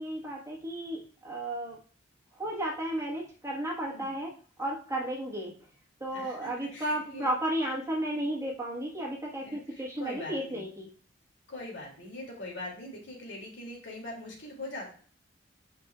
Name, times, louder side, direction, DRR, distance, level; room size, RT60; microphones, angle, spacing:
voice 1, 0.0-1.8 2.3-4.3 4.6-5.5 6.0-10.9, right 1 dB, 15° right, -3 dB, 1.4 m, -33 dB
voice 2, 6.1-7.3 9.4-10.6 11.5-14.9, left 1 dB, 75° left, -1 dB, 2.6 m, -42 dB
9.6 x 5.3 x 2.4 m, 0.43 s
head